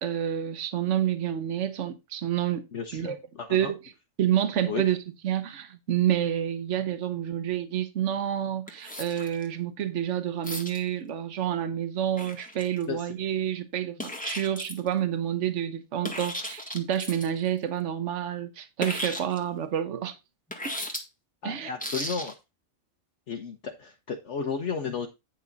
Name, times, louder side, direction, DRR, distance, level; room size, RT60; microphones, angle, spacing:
voice 1, 0.0-2.6 2.9-3.2 3.5-3.8 4.2-20.1 21.4-21.7, right 10 dB, 65° right, 1.3 m, -28 dB
voice 2, 2.7-3.7 4.7-4.8 12.9-13.0 21.4-22.3 23.3-25.1, left 5 dB, 60° left, 1.4 m, -33 dB
sound 1, 8.7-9.5 10.4-10.8 12.1-13.0 14.0-14.9 16.0-17.4 18.8-19.4 20.5-21.0 21.8-22.3, left 1 dB, 5° left, 1.7 m, -35 dB
9.6 x 6.0 x 4.0 m
omnidirectional pair, 1.4 m